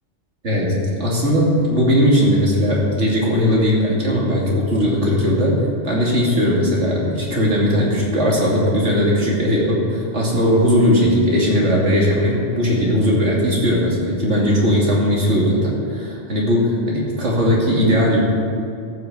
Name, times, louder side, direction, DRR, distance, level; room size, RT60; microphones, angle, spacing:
voice 1, 0.4-5.6 5.8-18.2, equal, 80° right, -4 dB, 3.0 m, -18 dB
14.5 x 6.2 x 7.1 m, 2.5 s
omnidirectional pair, 1.2 m